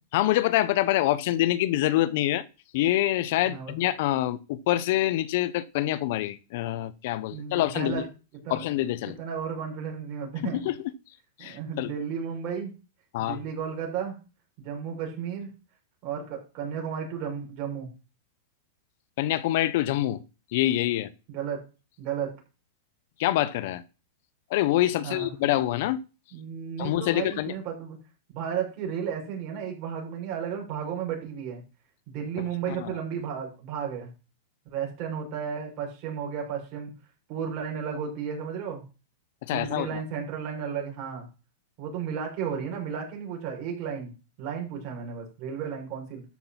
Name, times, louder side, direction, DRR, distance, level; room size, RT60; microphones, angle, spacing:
voice 1, 0.1-2.4 2.7-8.0 8.5-9.2 10.4-10.8 11.4-11.9 13.1-13.4 19.2-20.2 20.5-21.1 23.2-23.8 24.5-26.0 26.8-27.5 32.4-32.9 39.4-40.0, left 14 dB, 60° left, 0.8 m, -26 dB
voice 2, 7.3-8.0 8.4-8.7 9.0-10.7 11.4-12.7 13.2-14.2 14.6-15.5 16.0-17.9 21.3-21.6 22.0-22.3 25.0-25.3 26.3-28.0 28.3-31.6 32.1-34.1 34.7-36.9 37.3-38.8 39.5-41.3 41.8-44.1 44.4-46.2, right 7 dB, 45° right, 6.2 m, -33 dB
13.0 x 6.0 x 5.8 m
supercardioid pair, 140°, 0 cm